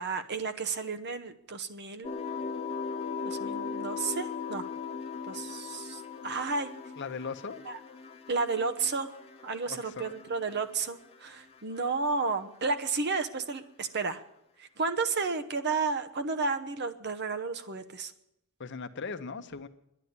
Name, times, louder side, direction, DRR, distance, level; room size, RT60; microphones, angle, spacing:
voice 1, 0.0-2.1 3.2-4.7 5.3-6.7 7.7-7.8 8.3-9.1 9.4-14.2 14.6-18.1, right 4 dB, 50° right, 9 dB, 0.9 m, -32 dB
sound 1, 2.0-11.2 11.5-12.2, left 5 dB, 30° left, 1.2 m, -39 dB
voice 2, 7.0-7.6 9.7-10.1 18.6-19.7, left 5 dB, 55° left, 10 dB, 0.8 m, -38 dB
11.0 x 10.5 x 9.6 m, 0.81 s
head